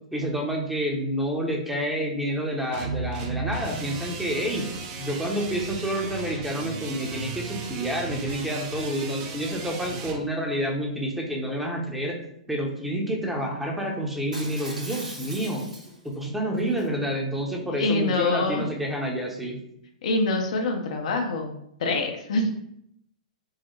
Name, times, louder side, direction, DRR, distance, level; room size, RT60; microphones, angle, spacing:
voice 1, 0.1-4.7 5.0-12.2 12.5-15.6 16.0-19.6, equal, 5° right, 0 dB, 0.7 m, -28 dB
sound 1, 2.7-10.2, right 4 dB, 40° right, 0.6 m, -35 dB
Shatter, 14.3-16.1 16.6-16.8, right 1 dB, 85° right, 1.2 m, -39 dB
voice 2, 17.7-18.6 20.0-22.5, left 2 dB, 60° left, 3 dB, 0.6 m, -25 dB
4.6 x 2.1 x 3.1 m, 0.74 s
figure-of-eight pair, 110°, 4 cm